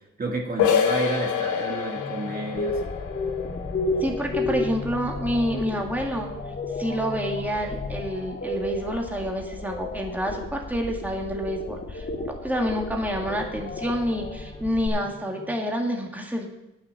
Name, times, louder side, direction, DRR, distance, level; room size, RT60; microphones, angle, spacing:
voice 1, 0.2-2.8, right 2 dB, 30° right, 0 dB, 1.9 m, -30 dB
sound 1, 0.6-6.1, left 8 dB, 75° left, 1.6 m, -28 dB
sound 2, 2.0-8.6 12.8-15.6, left 3 dB, 10° left, 0.9 m, -40 dB
sound 3, 2.6-14.9, left 2 dB, 35° left, 1.8 m, -32 dB
voice 2, 4.0-6.3 6.8-16.5, equal, 5° right, 0 dB, 2.1 m, -28 dB
8.9 x 8.3 x 7.2 m, 0.92 s
cardioid pair, 90°, 30 cm